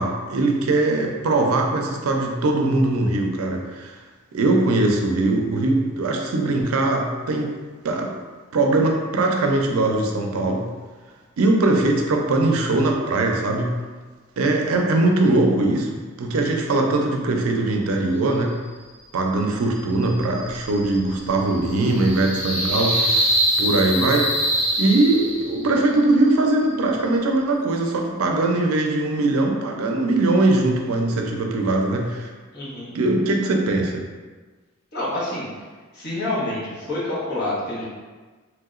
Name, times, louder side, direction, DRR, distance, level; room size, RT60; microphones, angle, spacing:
voice 1, 0.0-4.0 4.3-7.6 7.8-8.1 8.5-10.7 11.4-13.8 14.4-18.6 19.1-23.1 23.6-24.3 24.8-32.3 32.9-34.0, right 2 dB, 80° right, 2 dB, 0.4 m, -21 dB
sound 1, 19.8-25.7, right 1 dB, 90° left, 1.4 m, -25 dB
voice 2, 32.5-33.0 34.9-35.6 35.9-37.8, left 1 dB, 50° left, -8 dB, 1.1 m, -27 dB
3.3 x 2.8 x 2.4 m, 1.4 s
head